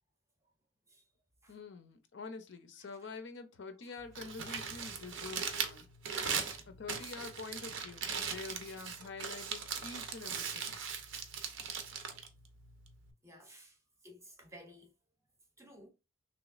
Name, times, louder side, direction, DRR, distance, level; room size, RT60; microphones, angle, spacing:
voice 1, 1.5-5.9 6.7-10.8, left 4 dB, 55° left, 0.5 m, -47 dB
voice 2, 2.8-3.2 3.8-3.9 6.1-6.7 13.2-14.9 15.6-15.9, equal, 15° right, 0.6 m, -57 dB
Crumpling crinkling, 4.0-13.1, right 6 dB, 60° right, 0.6 m, -39 dB
3.4 x 2.9 x 2.4 m
head